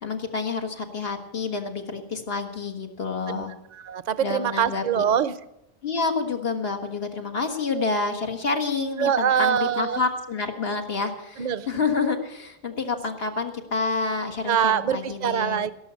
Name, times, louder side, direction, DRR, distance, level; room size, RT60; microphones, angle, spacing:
voice 1, 0.0-3.5 4.2-5.0 5.8-15.6, left 4 dB, 75° left, 4 dB, 1.8 m, -28 dB
voice 2, 3.7-5.4 9.0-10.0 11.4-11.7 14.5-15.7, right 8 dB, 50° right, 16 dB, 0.7 m, -24 dB
17.5 x 6.8 x 8.2 m, 0.86 s
omnidirectional pair, 1.0 m